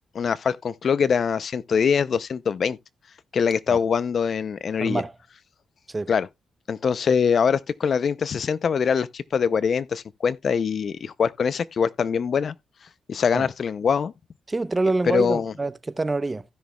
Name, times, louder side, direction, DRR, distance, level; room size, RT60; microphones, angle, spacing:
voice 1, 0.1-2.8 3.3-5.0 6.1-6.3 6.7-12.5 13.1-14.1 15.1-15.5, left 6 dB, 60° left, 0.5 m, -23 dB
voice 2, 4.8-5.1 5.9-6.1 13.3-13.5 14.5-16.4, right 2 dB, 25° right, 0.7 m, -26 dB
16.0 x 6.2 x 2.3 m
cardioid pair, 70°, 0 cm